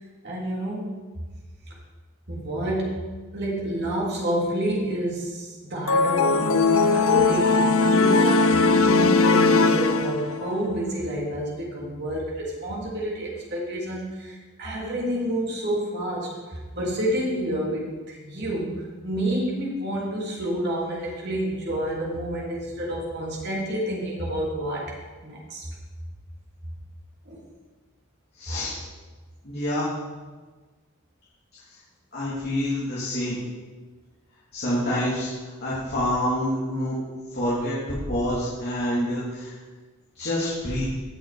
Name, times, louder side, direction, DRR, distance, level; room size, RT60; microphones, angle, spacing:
voice 1, 0.2-0.9 2.3-3.0 3.3-24.9 25.2-25.7 27.2-27.4, right 1 dB, 50° right, -3 dB, 3.4 m, -29 dB
sound 1, 5.9-10.5, left 4 dB, 75° left, 0.7 m, -19 dB
voice 2, 28.4-28.7 29.4-29.9 32.1-33.4 34.5-35.3 35.6-36.9 37.3-37.8 38.1-39.5 40.1-41.0, left 1 dB, 45° left, -9 dB, 3.3 m, -27 dB
18.5 x 6.6 x 5.1 m, 1.3 s
head